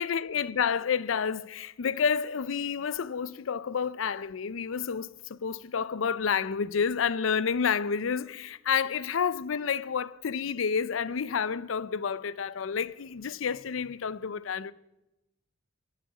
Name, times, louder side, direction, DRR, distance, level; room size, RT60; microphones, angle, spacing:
voice 1, 0.0-14.7, left 6 dB, 80° left, 0.5 m, -29 dB
13.0 x 6.6 x 7.9 m
head